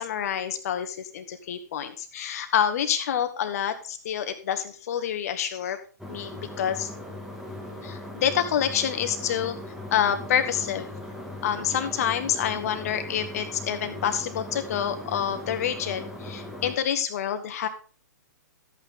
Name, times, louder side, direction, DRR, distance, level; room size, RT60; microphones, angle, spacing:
voice 1, 0.0-5.8 6.1-6.9 7.8-9.6 9.9-10.9 11.4-17.7, left 9 dB, 55° left, 8 dB, 2.0 m, -27 dB
sound 1, 6.0-16.8, left 1 dB, 5° right, 2.4 m, -39 dB
13.5 x 8.9 x 3.8 m, 0.37 s
hypercardioid pair, 125°, 10 cm